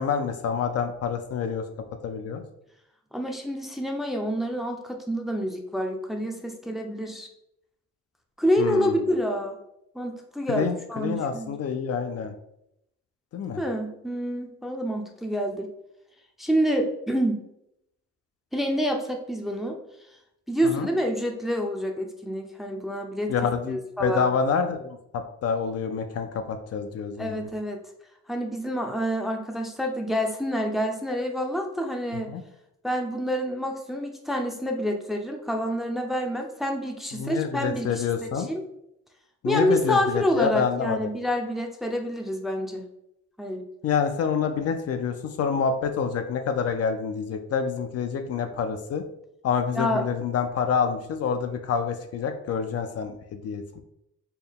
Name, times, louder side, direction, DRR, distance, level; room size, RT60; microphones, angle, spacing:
voice 1, 0.0-1.7 2.0-2.4 8.6-9.0 10.5-12.3 13.3-13.6 20.6-20.9 23.3-27.5 32.3-32.4 37.1-38.5 39.4-41.1 43.8-49.0 49.4-53.8, left 6 dB, 55° left, 7 dB, 0.5 m, -27 dB
voice 2, 3.1-7.3 8.4-9.6 9.9-11.6 13.6-15.7 16.4-17.4 18.5-19.8 20.5-23.3 23.7-24.3 27.2-27.8 28.3-32.3 32.8-38.6 39.4-42.8 43.4-43.6 49.7-50.0, equal, ahead, 2 dB, 0.5 m, -27 dB
4.5 x 2.2 x 3.5 m, 0.80 s
cardioid pair, 90°, 30 cm